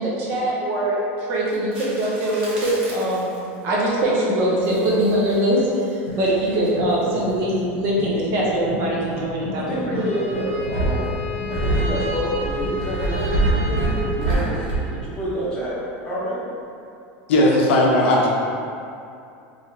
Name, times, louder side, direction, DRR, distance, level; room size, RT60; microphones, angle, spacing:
voice 1, 0.0-3.3 3.6-10.0, right 1 dB, 35° right, -5 dB, 0.5 m, -22 dB
sound 1, 1.5-3.5 4.6-5.5 6.2-6.9 10.3-15.0, right 2 dB, 80° right, 0.9 m, -25 dB
sound 2, 6.1-13.8, left 1 dB, 50° left, 0.9 m, -34 dB
voice 2, 9.6-11.1 11.5-14.6 14.9-15.8 16.0-16.5, equal, 15° left, -11 dB, 0.8 m, -28 dB
Bowed string instrument, 9.9-14.9, left 1 dB, 15° right, 1.3 m, -31 dB
voice 3, 17.3-18.3, left 1 dB, 80° left, -3 dB, 0.6 m, -16 dB
3.3 x 2.5 x 2.7 m, 2.6 s
supercardioid pair, 180°, 6 cm